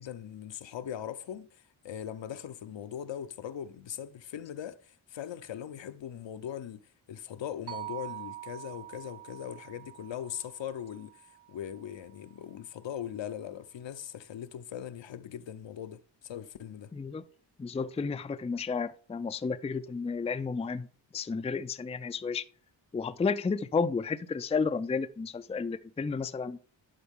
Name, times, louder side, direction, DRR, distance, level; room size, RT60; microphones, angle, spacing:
voice 1, 0.0-6.8 7.1-11.2 11.5-16.9, left 9 dB, 65° left, 0.7 m, -40 dB
sound 1, 7.7-11.9, right 15 dB, 55° right, 1.6 m, -45 dB
voice 2, 16.9-17.2 17.6-20.9 21.1-22.4 22.9-26.6, left 5 dB, 15° left, 0.4 m, -32 dB
11.0 x 4.4 x 3.6 m
cardioid pair, 70°, 47 cm